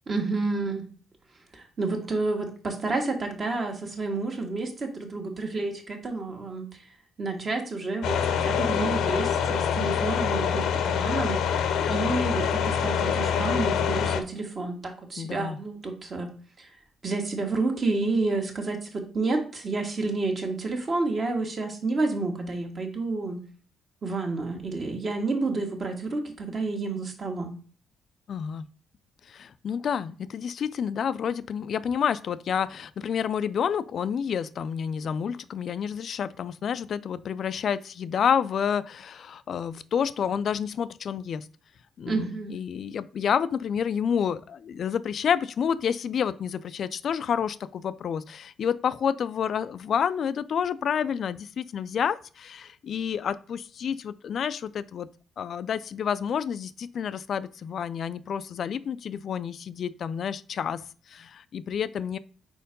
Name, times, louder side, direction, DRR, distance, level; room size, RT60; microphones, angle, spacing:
voice 1, 0.1-0.8 1.5-6.7 7.2-11.4 11.9-16.3 16.6-16.7 17.0-23.4 24.0-27.6 42.1-42.5, right 3 dB, 40° right, 3 dB, 1.6 m, -29 dB
sound 1, 8.0-14.2, left 7 dB, 85° left, 0.7 m, -25 dB
voice 2, 15.2-15.6 28.3-28.7 29.3-41.5 42.0-55.1 55.4-62.2, left 7 dB, 60° left, 14 dB, 0.3 m, -29 dB
4.5 x 4.4 x 5.2 m, 0.40 s
cardioid pair, 90°, 0 cm